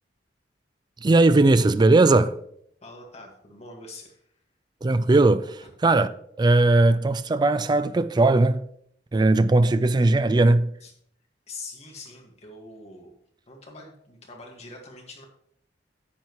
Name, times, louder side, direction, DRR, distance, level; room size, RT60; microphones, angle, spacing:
voice 1, 1.0-2.4 4.8-6.1 6.4-8.6 9.1-10.7, right 2 dB, 25° right, 0.4 m, -19 dB
voice 2, 2.8-4.2 5.6-5.7 10.8-10.9 11.5-13.2 13.5-15.2, left 2 dB, 35° left, 1.8 m, -43 dB
10.5 x 7.6 x 3.0 m
head